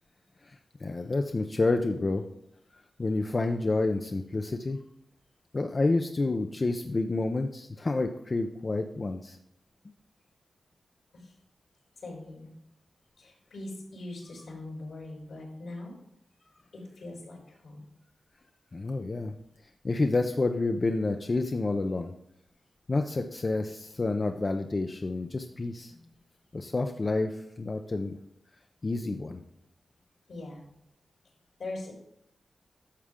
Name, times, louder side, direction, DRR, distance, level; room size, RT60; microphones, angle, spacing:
voice 1, 0.5-2.2 3.0-4.8 5.5-9.4 18.7-19.3 19.8-22.1 22.9-25.9 26.5-28.2 28.8-29.4, left 2 dB, 35° left, 5 dB, 0.6 m, -29 dB
voice 2, 12.0-12.5 13.2-15.9 16.7-17.9 30.3-30.6 31.6-31.9, left 2 dB, 75° left, -2 dB, 4.5 m, -41 dB
11.5 x 7.0 x 3.7 m, 0.75 s
wide cardioid pair, 130°, 0 cm